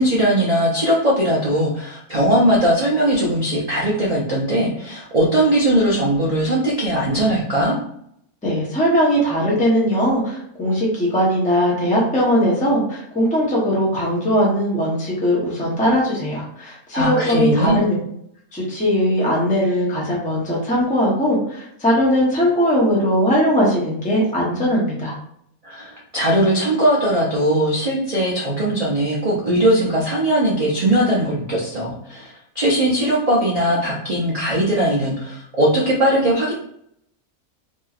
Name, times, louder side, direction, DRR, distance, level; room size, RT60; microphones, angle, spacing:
voice 1, 0.0-7.7 16.9-17.8 25.6-36.5, right 1 dB, 80° right, -6 dB, 0.3 m, -19 dB
voice 2, 8.4-18.0 18.5-25.1, equal, 10° left, -5 dB, 0.4 m, -19 dB
2.9 x 2.6 x 2.4 m, 0.71 s
omnidirectional pair, 1.6 m